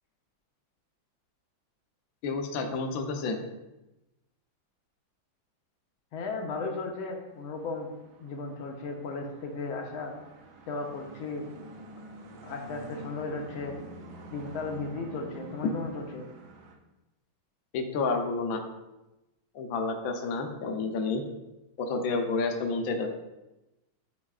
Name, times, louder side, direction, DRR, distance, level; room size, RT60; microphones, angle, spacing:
voice 1, 2.2-3.4 15.6-15.7 17.7-18.6 19.5-21.2 21.8-23.1, left 3 dB, 65° left, 3 dB, 0.9 m, -30 dB
voice 2, 6.1-7.9 8.2-10.1 10.7-11.5 12.4-13.8 14.3-16.3, left 3 dB, 80° left, 2 dB, 1.6 m, -35 dB
sound 1, 7.1-16.8, right 2 dB, 75° right, 1.6 m, -48 dB
9.7 x 4.4 x 2.4 m, 0.98 s
omnidirectional pair, 2.2 m